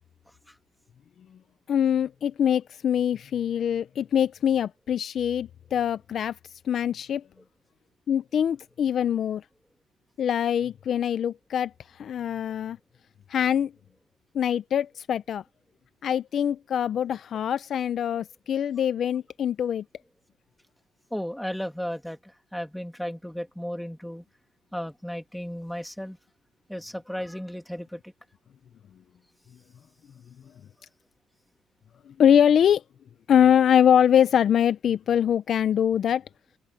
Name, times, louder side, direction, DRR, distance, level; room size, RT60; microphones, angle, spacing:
voice 1, 1.7-6.3 6.7-7.2 8.1-9.4 10.2-11.7 12.0-12.8 13.3-13.7 14.3-15.4 16.0-19.8 32.2-32.8 33.3-36.2, left 9 dB, 45° left, 0.5 m, -23 dB
voice 2, 21.1-24.2 24.7-26.2 26.7-28.1, equal, ahead, 2.3 m, -34 dB
open air
cardioid pair, 140°, 0 cm